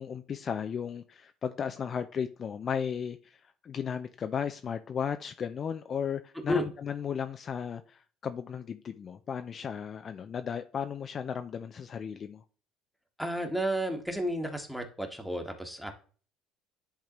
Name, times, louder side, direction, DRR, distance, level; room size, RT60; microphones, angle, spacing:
voice 1, 0.0-3.2 3.6-12.4, left 7 dB, 45° left, 0.4 m, -35 dB
voice 2, 13.2-15.9, equal, ahead, 1.4 m, -32 dB
10.5 x 3.6 x 3.0 m
supercardioid pair, 75°, 0 cm